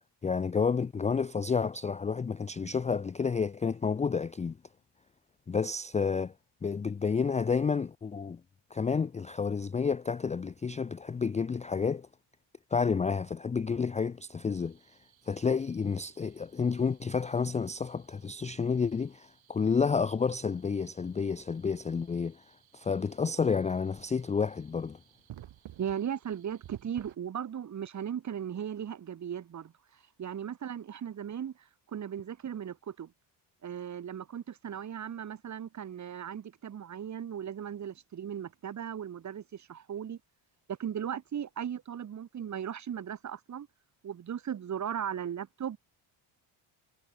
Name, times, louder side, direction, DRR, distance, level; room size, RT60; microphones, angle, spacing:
voice 1, 0.2-4.6 5.5-6.3 6.6-8.4 8.7-12.1 12.7-14.8 15.3-22.4 22.7-25.0, left 5 dB, 15° left, 0.4 m, -30 dB
sound 1, 14.5-27.2, right 13 dB, 65° right, 5.2 m, -56 dB
voice 2, 25.8-29.7 30.2-33.1 33.6-40.2 40.7-43.7 44.0-45.8, right 9 dB, 35° right, 1.3 m, -37 dB
cardioid pair, 150°, 50 cm